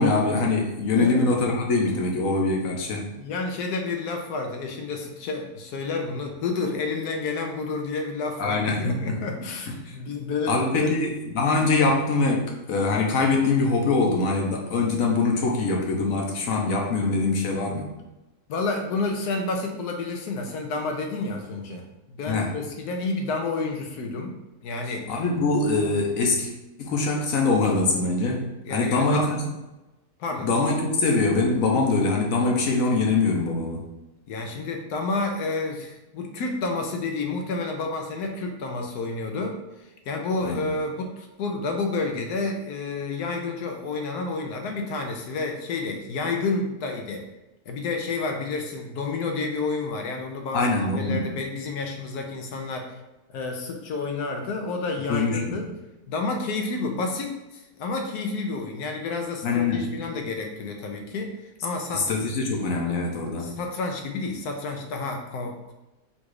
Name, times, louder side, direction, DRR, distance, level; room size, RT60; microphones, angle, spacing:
voice 1, 0.0-3.1 8.4-9.2 9.7-9.9 10.5-17.9 22.3-22.6 25.1-26.5 26.8-29.4 30.4-33.9 40.4-40.6 50.5-51.3 55.1-55.6 59.4-60.0 61.9-63.6, left 3 dB, 65° left, 0 dB, 1.1 m, -23 dB
voice 2, 3.2-11.0 18.5-25.3 28.6-29.3 30.2-30.5 34.3-47.2 47.7-53.0 53.3-55.7 56.1-62.1 63.4-65.7, left 3 dB, 85° left, 3 dB, 1.2 m, -30 dB
4.0 x 2.4 x 4.7 m, 1.0 s
omnidirectional pair, 1.6 m